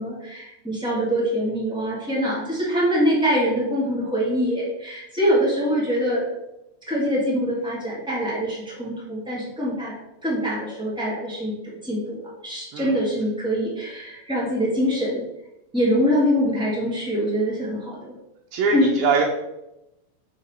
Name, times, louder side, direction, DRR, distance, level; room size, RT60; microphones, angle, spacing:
voice 1, 0.0-6.2 6.9-9.9 10.2-11.5 11.8-15.2 15.7-18.1 18.7-18.9, equal, 5° right, -7 dB, 0.6 m, -24 dB
voice 2, 18.5-19.2, right 4 dB, 75° right, 0 dB, 2.8 m, -22 dB
6.5 x 4.8 x 6.7 m, 0.91 s
omnidirectional pair, 5.6 m